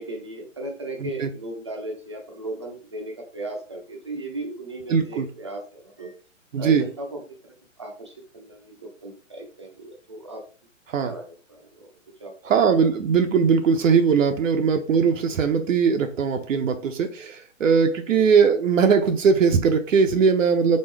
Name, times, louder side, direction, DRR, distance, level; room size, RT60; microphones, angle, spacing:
voice 1, 0.0-6.2 6.6-7.4 7.8-10.4 11.0-11.9 12.2-12.4 18.1-18.2, right 2 dB, 25° right, 2 dB, 0.4 m, -36 dB
voice 2, 4.9-5.3 6.5-6.8 10.9-11.1 12.4-20.8, right 6 dB, 75° right, 6 dB, 0.7 m, -20 dB
4.3 x 3.5 x 3.2 m, 0.40 s
hypercardioid pair, 170°, 39 cm